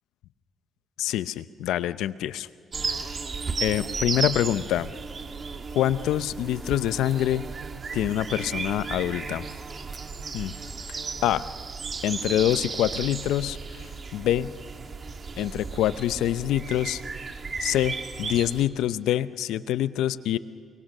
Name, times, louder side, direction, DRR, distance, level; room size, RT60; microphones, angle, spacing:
voice 1, 1.0-2.5 2.9-3.1 3.6-4.9 5.7-7.5 7.9-9.4 10.3-10.5 10.9-11.5 12.0-13.8 14.1-14.5 15.4-17.0 17.6-20.4, left 12 dB, 85° left, 14 dB, 0.7 m, -26 dB
sound 1, 2.7-18.7, right 4 dB, 40° right, 1.8 m, -34 dB
29.0 x 24.5 x 6.7 m, 2.3 s
cardioid pair, 90°, 0 cm